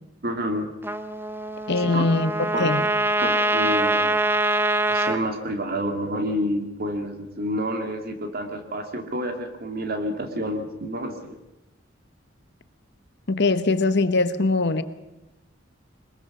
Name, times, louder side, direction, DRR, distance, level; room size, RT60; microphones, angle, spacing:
voice 1, 0.2-0.7 1.8-2.0 2.5-2.7 3.2-4.1 4.9-11.4, equal, 50° right, 5 dB, 2.5 m, -29 dB
Trumpet, 0.8-5.2, right 2 dB, 10° right, 0.7 m, -24 dB
voice 2, 1.7-2.3 2.6-2.8 13.3-14.8, left 3 dB, 60° left, 12 dB, 1.0 m, -21 dB
22.0 x 21.0 x 6.0 m, 0.97 s
head